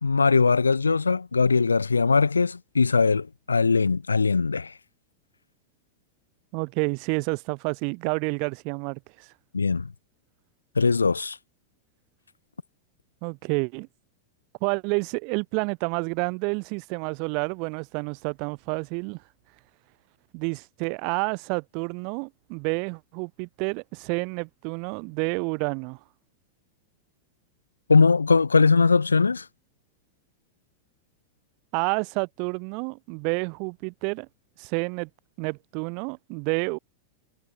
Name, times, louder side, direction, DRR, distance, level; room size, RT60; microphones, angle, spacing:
voice 1, 0.0-4.7 9.5-9.9 10.8-11.4 27.9-29.4, left 4 dB, 75° left, 0.5 m, -20 dB
voice 2, 6.5-9.3 13.2-13.9 14.6-19.2 20.3-26.0 31.7-34.3 34.6-35.1 35.4-36.8, right 37 dB, 45° right, 6.1 m, -29 dB
figure-of-eight pair, 90°, 0 cm